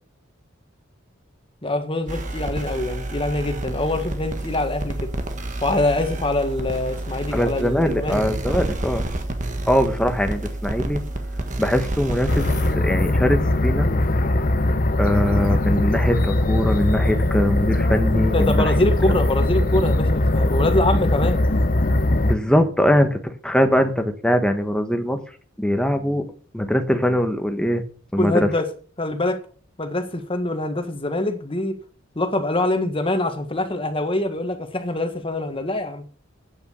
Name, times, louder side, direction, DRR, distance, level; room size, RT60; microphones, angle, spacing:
voice 1, 1.6-5.1 5.6-8.4 18.3-21.4 28.2-28.7 29.0-29.4 29.8-31.7 32.1-36.0, left 2 dB, 25° left, 1.6 m, -24 dB
sound 1, 2.1-12.8, right 1 dB, 40° right, 1.6 m, -29 dB
voice 2, 7.3-9.0 9.6-11.0 11.6-13.9 15.0-18.7 22.2-25.2 25.6-26.3 26.5-27.8 28.1-28.5, equal, 5° left, 1.3 m, -21 dB
sound 2, 12.3-22.3, left 1 dB, 45° left, 0.9 m, -20 dB
9.0 x 8.0 x 7.1 m
head